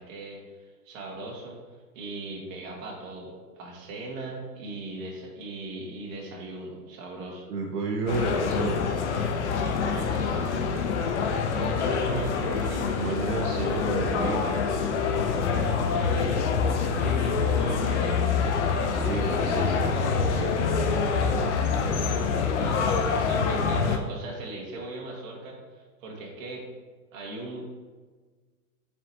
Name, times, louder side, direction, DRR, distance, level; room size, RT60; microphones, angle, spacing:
voice 1, 0.0-1.6 1.9-7.5 9.6-10.7 11.5-13.0 15.9-16.4 16.8-18.3 22.6-26.7 27.1-27.7, right 2 dB, 60° right, -1 dB, 1.9 m, -39 dB
voice 2, 7.5-9.0 12.1-12.2 12.9-14.8 18.7-21.6, right 4 dB, 85° right, 0 dB, 1.0 m, -32 dB
sound 1, 8.1-24.0, left 5 dB, 45° left, 0.7 m, -26 dB
7.3 x 4.9 x 2.9 m, 1.4 s
hypercardioid pair, 150°, 46 cm